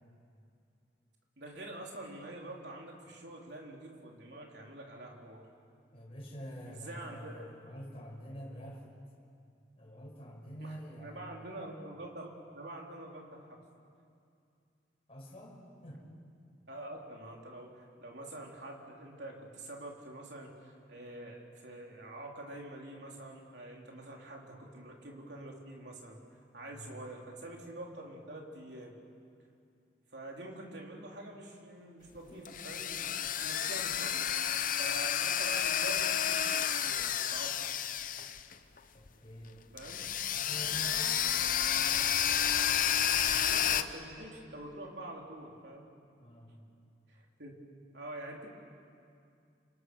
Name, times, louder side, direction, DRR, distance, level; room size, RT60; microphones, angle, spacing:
voice 1, 1.4-5.4 6.7-7.5 10.6-12.3 12.5-13.6 16.7-26.2 26.5-28.9 30.1-34.5 34.8-37.7 39.7-40.1 43.4-45.9 47.1-47.5 47.9-48.5, right 1 dB, 65° right, -1 dB, 3.9 m, -46 dB
voice 2, 5.9-8.8 9.8-11.6 15.1-16.1 26.7-26.9 38.9-39.7 40.3-41.3 46.2-46.6, equal, 35° left, -3 dB, 6.0 m, -47 dB
sound 1, 32.2-38.8 39.1-39.2 39.8-43.8, left 9 dB, 50° left, 0.8 m, -31 dB
28.0 x 26.5 x 6.4 m, 2.5 s
head